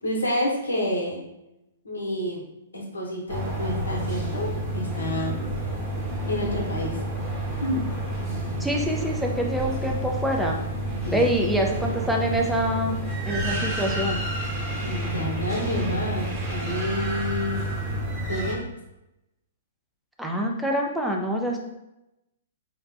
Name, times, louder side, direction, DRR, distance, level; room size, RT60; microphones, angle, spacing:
voice 1, 0.0-1.2 1.8-2.4 2.7-5.4 6.3-7.0 7.6-7.9 11.0-11.3 14.8-17.7 18.2-18.6, left 1 dB, 85° left, -1 dB, 0.9 m, -29 dB
sound 1, 3.3-18.5, right 1 dB, 25° right, 0.9 m, -29 dB
voice 2, 8.6-10.6 11.1-13.0 13.3-14.2 20.2-21.6, right 1 dB, ahead, 0 dB, 0.5 m, -25 dB
4.7 x 2.1 x 2.6 m, 0.91 s
hypercardioid pair, 120°, 0 cm